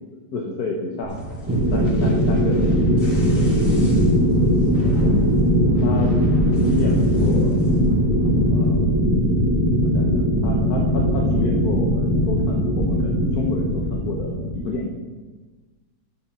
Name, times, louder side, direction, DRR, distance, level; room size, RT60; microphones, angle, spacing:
voice 1, 0.3-1.2 1.7-2.7 3.6-4.1 4.8-5.1 5.8-6.1 6.5-7.6 8.5-9.0 9.8-14.9, left 2 dB, 80° left, 0 dB, 1.6 m, -30 dB
Ship damaged explosions sparks, 1.0-8.7, left 1 dB, 60° left, 2.4 m, -34 dB
sound 1, 1.5-14.8, equal, 10° right, 1.1 m, -19 dB
11.0 x 8.0 x 6.0 m, 1.3 s
omnidirectional pair, 1.6 m